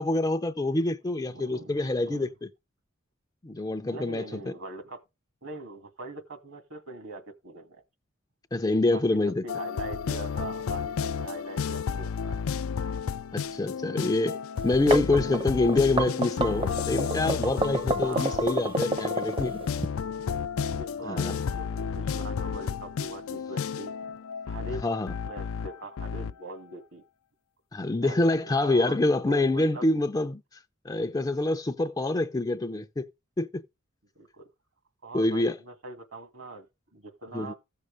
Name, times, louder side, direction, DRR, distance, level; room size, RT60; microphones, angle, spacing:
voice 1, 0.0-2.3 3.4-4.4 8.5-9.4 13.3-19.6 21.0-21.3 24.8-25.1 27.7-30.4 30.8-33.1 33.4-33.6 35.1-35.6 37.3-37.5, left 2 dB, 20° left, 0.5 m, -26 dB
voice 2, 1.3-2.3 3.7-5.0 5.4-7.8 8.9-12.4 17.9-18.5 20.0-20.4 20.6-24.0 24.5-24.8 25.2-27.0 28.0-29.0 29.2-29.8 31.2-31.4 34.2-34.4 35.0-36.7 36.9-37.6, right 3 dB, 70° right, 2.3 m, -42 dB
sound 1, 9.5-26.3, left 6 dB, 75° left, 0.4 m, -32 dB
sound 2, 14.6-19.9, right 2 dB, 25° right, 0.7 m, -29 dB
15.0 x 6.5 x 3.4 m
head